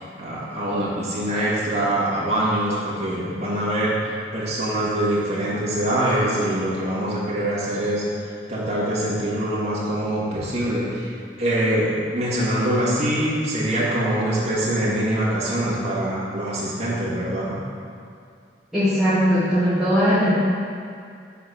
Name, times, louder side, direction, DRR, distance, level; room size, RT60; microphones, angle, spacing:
voice 1, 0.0-3.9 4.3-11.1 11.4-17.6, right 1 dB, 35° right, -8 dB, 2.0 m, -24 dB
voice 2, 18.7-20.3, equal, ahead, -14 dB, 1.6 m, -19 dB
7.9 x 4.2 x 6.3 m, 2.4 s
head